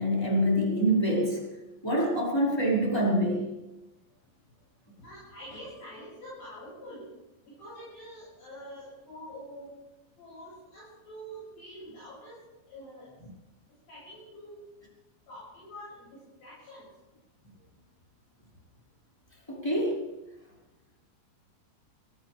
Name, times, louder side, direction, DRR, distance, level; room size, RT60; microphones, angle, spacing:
voice 1, 0.0-1.4 1.8-3.5 19.5-20.0, equal, 5° left, -5 dB, 5.2 m, -25 dB
voice 2, 5.0-7.0 7.4-9.7 10.2-12.4 12.7-13.1 13.9-14.6 15.3-16.8, equal, 55° left, -9 dB, 9.4 m, -46 dB
24.0 x 17.5 x 3.5 m, 1.0 s
omnidirectional pair, 5.0 m